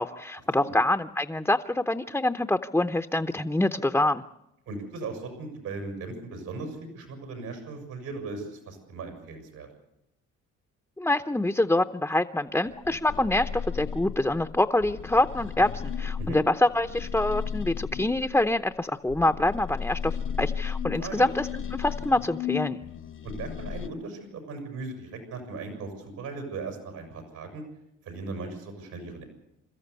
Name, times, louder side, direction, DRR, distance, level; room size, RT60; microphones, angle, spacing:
voice 1, 0.0-4.2 11.0-22.8, left 1 dB, 5° left, 8 dB, 0.7 m, -26 dB
voice 2, 4.7-9.7 16.2-16.4 21.0-21.3 23.2-27.6 28.0-29.2, right 3 dB, 85° right, 4 dB, 6.5 m, -38 dB
sound 1, 12.6-18.7 19.1-23.9, left 7 dB, 45° left, 0.8 m, -35 dB
28.0 x 13.5 x 8.3 m, 0.86 s
cardioid pair, 90°, 30 cm